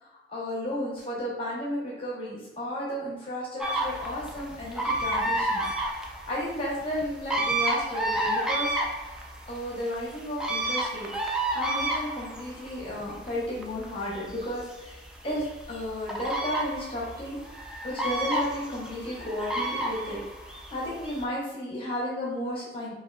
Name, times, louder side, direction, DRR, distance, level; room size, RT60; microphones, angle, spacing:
voice 1, 0.0-5.6 5.9-8.7 9.5-11.1 11.5-15.0 15.2-20.2 20.7-22.9, left 1 dB, 30° left, -6 dB, 0.9 m, -33 dB
sound 1, 3.6-21.2, right 1 dB, 5° right, 0.3 m, -31 dB
5.0 x 2.5 x 2.2 m, 1.0 s
head